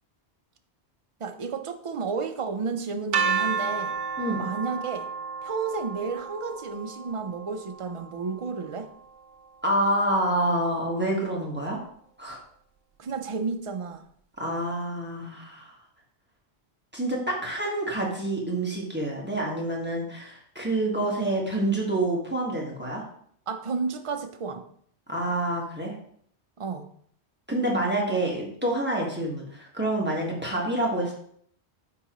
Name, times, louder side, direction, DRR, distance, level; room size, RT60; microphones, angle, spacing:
voice 1, 1.2-4.0 4.4-5.1 5.4-8.9 13.0-14.0 23.5-24.7 26.6-26.9, right 5 dB, 40° right, 6 dB, 0.5 m, -32 dB
sound 1, 3.1-9.1, right 6 dB, 85° right, 0.9 m, -32 dB
voice 2, 9.6-11.8 12.2-12.4 14.4-15.8 16.9-23.0 25.1-25.9 27.5-31.1, right 1 dB, 10° right, -3 dB, 1.4 m, -27 dB
9.4 x 3.8 x 3.0 m, 0.64 s
omnidirectional pair, 1.1 m